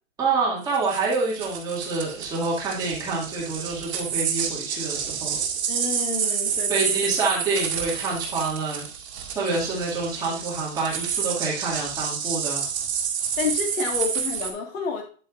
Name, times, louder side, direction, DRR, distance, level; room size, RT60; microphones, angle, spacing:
voice 1, 0.2-5.4 6.7-8.9 9.3-12.7, right 3 dB, 10° right, -6 dB, 2.4 m, -27 dB
sound 1, 0.6-14.5, right 7 dB, 50° right, 2.3 m, -29 dB
voice 2, 5.7-7.0 9.4-9.6 13.4-15.0, left 5 dB, 75° left, 0 dB, 2.1 m, -30 dB
10.0 x 8.1 x 2.6 m, 0.40 s
hypercardioid pair, 165°, 41 cm